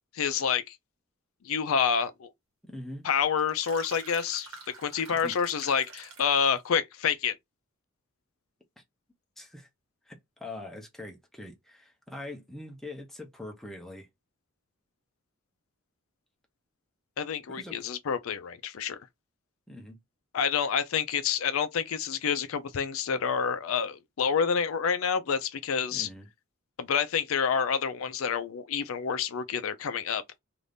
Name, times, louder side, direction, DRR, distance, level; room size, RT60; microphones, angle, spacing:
voice 1, 0.1-0.8 1.4-2.3 3.0-4.5 4.8-7.3 17.2-19.0 20.3-26.1 26.8-30.2, left 7 dB, 75° left, 0.4 m, -28 dB
voice 2, 2.6-3.1 5.1-5.4 8.8-8.9 9.4-9.7 10.1-14.1 17.5-17.8 19.7-20.0 25.9-26.3, left 1 dB, ahead, 0.7 m, -43 dB
sound 1, 3.4-6.7, right 4 dB, 80° right, 1.1 m, -48 dB
2.6 x 2.5 x 3.4 m
head